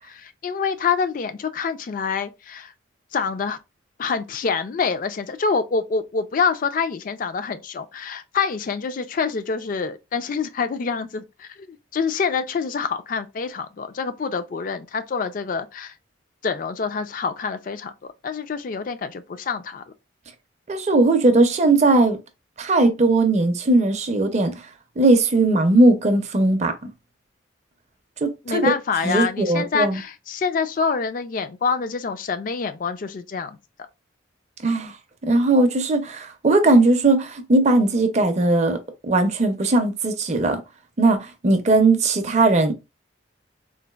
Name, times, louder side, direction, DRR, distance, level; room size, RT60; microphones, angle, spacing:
voice 1, 0.0-2.7 3.1-3.6 4.0-15.9 16.4-19.8 28.5-33.6, left 5 dB, 45° left, 0.3 m, -26 dB
voice 2, 20.7-22.2 22.6-24.5 25.0-26.7 28.2-28.7 29.0-30.0 34.6-34.9 35.2-38.8 39.0-40.6 41.0-42.7, right 2 dB, 35° right, 0.4 m, -18 dB
3.9 x 2.4 x 2.3 m
head